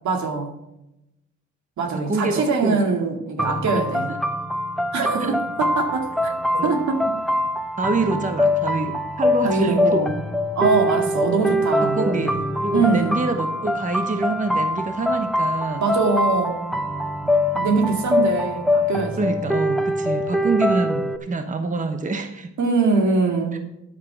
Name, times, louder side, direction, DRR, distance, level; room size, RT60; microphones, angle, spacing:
voice 1, 0.0-0.5 1.8-4.1 4.9-6.3 6.6-7.1 9.4-10.1 10.6-12.3 12.7-13.2 15.8-16.8 17.3-19.6 22.6-23.6, right 4 dB, 70° right, 3 dB, 2.4 m, -23 dB
voice 2, 1.9-2.8 4.1-4.2 5.2-5.3 6.6-6.7 7.8-10.1 10.6-10.8 11.8-15.9 17.2-17.4 19.2-22.5, right 3 dB, 25° right, 7 dB, 1.0 m, -26 dB
sound 1, 3.4-21.2, left 1 dB, ahead, 1.1 m, -24 dB
10.0 x 8.2 x 6.0 m, 0.88 s
cardioid pair, 90°, 30 cm